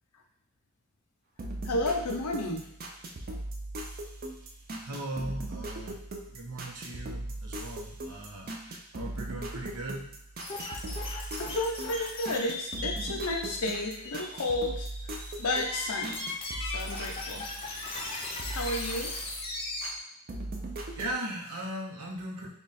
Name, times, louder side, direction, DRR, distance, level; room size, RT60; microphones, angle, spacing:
sound 1, 1.4-18.1 18.4-20.0 20.3-21.1, right 1 dB, 40° right, 0.5 m, -39 dB
voice 1, 1.6-2.7 11.4-14.9 15.4-16.2 16.6-17.4 18.5-19.1, left 2 dB, 90° left, 2 dB, 0.7 m, -32 dB
voice 2, 4.7-6.0 6.3-10.1 20.9-22.5, right 1 dB, 80° right, -1 dB, 0.9 m, -38 dB
sound 2, 10.4-19.9, left 2 dB, 25° left, 0.5 m, -38 dB
3.6 x 2.3 x 4.1 m, 0.75 s
head